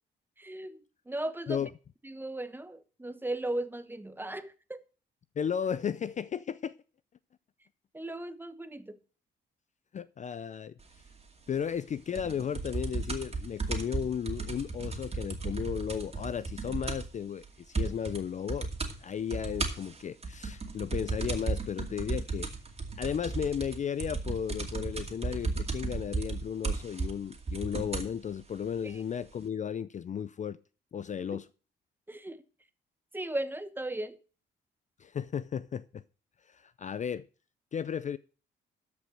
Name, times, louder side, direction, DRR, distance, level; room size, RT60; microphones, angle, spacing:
voice 1, 0.4-1.6 2.0-4.8 7.9-9.0 28.8-29.0 31.3-31.4 32.1-32.4 33.1-34.2, right 1 dB, 10° right, 1.1 m, -37 dB
voice 2, 5.4-6.7 9.9-10.7 11.5-18.7 19.0-22.5 23.0-30.6 30.9-31.5 35.0-36.0 36.5-37.3 37.7-38.2, left 8 dB, 40° left, 0.4 m, -34 dB
sound 1, 12.1-17.2 17.4-17.5 17.7-18.2 18.5-18.9 19.3-28.1 28.9-29.0, right 3 dB, 30° right, 2.4 m, -34 dB
13.0 x 5.3 x 6.4 m
cardioid pair, 90°, 20 cm